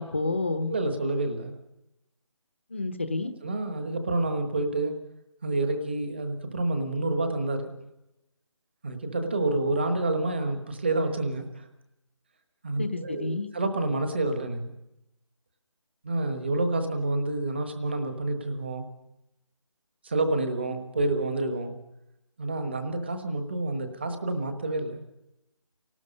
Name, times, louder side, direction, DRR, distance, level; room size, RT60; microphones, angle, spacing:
voice 1, 0.0-0.7 2.7-3.3 12.8-13.5, left 3 dB, 20° left, 10 dB, 0.8 m, -29 dB
voice 2, 0.7-1.6 3.4-5.0 5.4-7.7 8.8-11.7 12.6-14.7 16.0-18.8 20.0-21.8 22.4-25.0, right 2 dB, 20° right, 8 dB, 1.3 m, -28 dB
28.0 x 18.5 x 5.3 m, 0.90 s
figure-of-eight pair, 180°, 16 cm